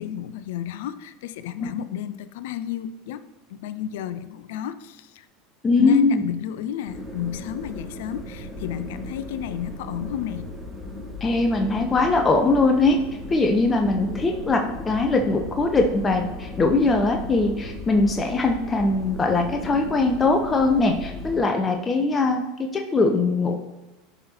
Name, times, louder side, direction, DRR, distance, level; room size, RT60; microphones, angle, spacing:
voice 1, 0.0-3.2 3.5-5.3 5.8-10.5, left 10 dB, 65° left, 13 dB, 0.5 m, -32 dB
voice 2, 5.6-6.2 11.2-13.0 13.3-22.4 22.7-23.5, left 3 dB, 25° left, 3 dB, 0.9 m, -21 dB
sound 1, 6.9-21.4, left 1 dB, ahead, 2.7 m, -36 dB
14.0 x 5.4 x 3.0 m, 1.0 s
hypercardioid pair, 80°, 0 cm